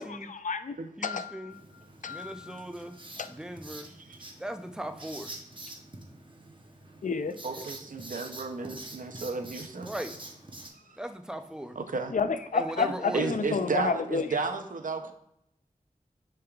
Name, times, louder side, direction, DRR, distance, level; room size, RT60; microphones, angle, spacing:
voice 1, 0.0-0.8 1.0-1.4 2.0-2.6 3.2-3.3 7.0-7.3 12.1-14.3, left 5 dB, 60° left, 11 dB, 0.4 m, -30 dB
voice 2, 1.0-1.6 2.1-3.0 3.3-3.9 4.4-5.3 9.8-10.3 11.0-11.8 12.5-13.3, right 1 dB, 5° right, 7 dB, 0.5 m, -38 dB
Writing, 1.5-10.7, right 2 dB, 35° right, 0.8 m, -46 dB
voice 3, 7.4-9.9 10.7-11.0 11.8-12.1 13.1-15.1, right 4 dB, 65° right, 6 dB, 0.6 m, -33 dB
6.6 x 3.4 x 2.3 m, 0.80 s
cardioid pair, 40°, 15 cm